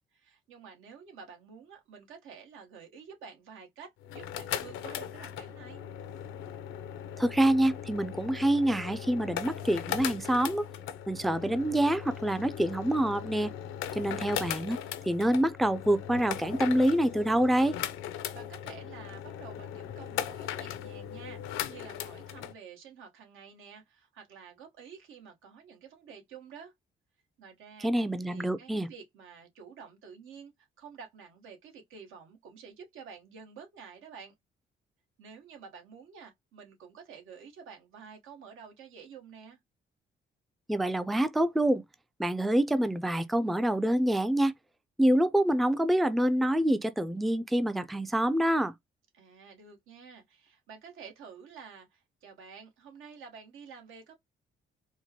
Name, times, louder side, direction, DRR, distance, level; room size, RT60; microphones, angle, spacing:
voice 1, 0.0-5.8 18.3-26.7 27.4-27.9 28.3-34.3 35.2-39.6 49.1-54.1, right 6 dB, 85° right, 1.2 m, -50 dB
sound 1, 4.0-22.5, left 10 dB, 90° left, 0.5 m, -38 dB
voice 2, 7.2-10.6 11.1-13.5 13.9-14.8 15.0-17.8 27.8-28.9 40.7-41.8 42.2-44.5 45.0-48.7, right 1 dB, ahead, 0.3 m, -26 dB
4.4 x 2.1 x 2.8 m
cardioid pair, 90°, 20 cm